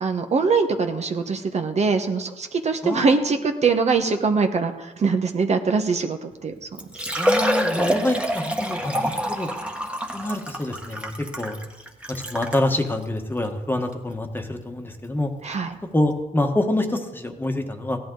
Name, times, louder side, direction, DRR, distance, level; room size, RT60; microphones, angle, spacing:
voice 1, 0.0-6.8 15.4-15.8, right 4 dB, 45° right, 6 dB, 1.1 m, -23 dB
voice 2, 2.8-3.3 7.2-9.5 10.1-11.1 11.4-11.6 12.1-15.3 15.9-18.0, left 1 dB, 10° left, 4 dB, 1.4 m, -26 dB
Liquid, 6.3-6.4 6.8-12.7 13.4-13.5 13.9-14.0 15.7-15.8 15.9-16.0, equal, 5° right, 1.5 m, -26 dB
16.5 x 11.0 x 3.9 m, 1.1 s
cardioid pair, 90°, 16 cm